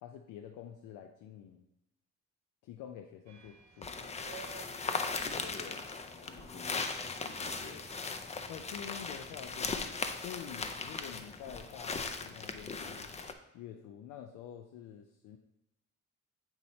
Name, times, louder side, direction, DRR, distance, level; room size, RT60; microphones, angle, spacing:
voice 1, 0.0-1.7 2.6-4.3 8.5-13.1 13.5-15.4, left 9 dB, 85° left, 5 dB, 0.5 m, -48 dB
sound 1, 3.3-13.4, right 7 dB, 65° right, 1.4 m, -58 dB
sound 2, 3.8-13.3, left 4 dB, 20° left, 0.4 m, -38 dB
voice 2, 5.2-5.9 6.2-7.9, left 4 dB, 60° left, 4 dB, 1.0 m, -49 dB
8.0 x 2.8 x 4.2 m, 0.89 s
cardioid pair, 90°, 30 cm